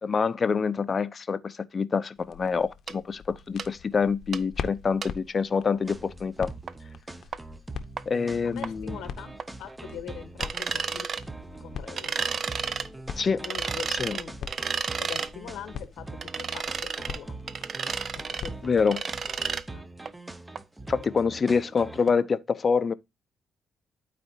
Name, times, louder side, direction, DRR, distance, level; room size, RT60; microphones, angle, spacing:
voice 1, 0.0-6.5 8.1-9.0 13.2-13.4 13.9-14.2 18.6-19.0 20.9-22.9, left 5 dB, 40° left, 0.6 m, -26 dB
sound 1, 2.2-19.7, left 7 dB, 65° left, 0.8 m, -44 dB
sound 2, 2.9-3.0 3.6-3.7 4.3-4.4 5.0-5.1 6.7-6.8 7.3-7.4 8.0-8.1 8.6-8.7 9.4-9.5 10.4-11.2 12.0-12.9 13.4-15.3 16.2-17.2 17.5-18.5 18.9-19.6 20.1-20.2 20.6-20.7 21.0-21.1, right 6 dB, 50° right, 0.5 m, -31 dB
sound 3, 5.8-22.1, right 2 dB, 15° right, 0.7 m, -43 dB
voice 2, 8.4-9.3 9.6-11.1 11.6-12.3 13.4-13.9 14.1-14.4 15.0-17.4 18.3-19.1 19.7-19.8 21.4-21.6, left 9 dB, 85° left, 1.1 m, -42 dB
12.5 x 4.1 x 2.7 m
cardioid pair, 90°, 0 cm